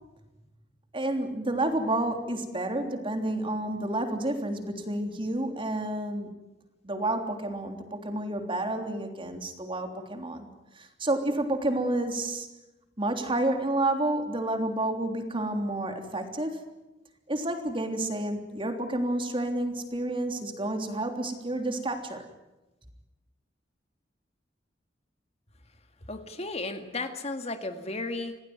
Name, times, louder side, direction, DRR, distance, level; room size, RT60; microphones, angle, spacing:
voice 1, 0.9-6.3 6.8-10.5 10.7-12.5 13.0-16.6 17.3-22.2, right 1 dB, 30° right, 5 dB, 3.3 m, -30 dB
voice 2, 26.1-28.4, left 2 dB, 35° left, 7 dB, 2.0 m, -34 dB
27.0 x 18.0 x 9.5 m, 1.0 s
head